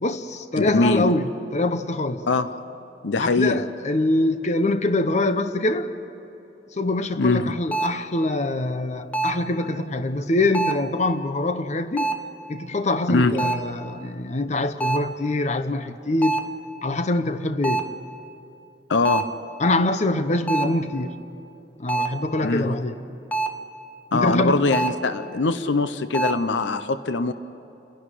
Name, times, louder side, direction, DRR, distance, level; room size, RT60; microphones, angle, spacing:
voice 1, 0.0-2.2 3.2-5.9 6.7-12.1 12.5-16.4 16.8-17.9 19.6-21.2 21.8-23.0 24.1-24.7, left 2 dB, 40° left, 0.9 m, -24 dB
voice 2, 0.6-1.1 2.3-2.5 3.0-3.6 7.2-7.4 13.1-13.4 18.9-19.3 22.4-22.7 24.1-27.3, left 3 dB, 75° left, 0.7 m, -22 dB
sound 1, 7.7-8.1 9.1-9.5 10.5-10.9 12.0-12.4 13.4-13.7 14.8-15.2 16.2-16.6 17.6-18.0 19.0-19.4 20.5-20.8 21.9-22.3 23.3-23.7 24.7-25.1 26.1-26.4, right 3 dB, 10° left, 1.0 m, -26 dB
29.5 x 11.0 x 10.0 m
head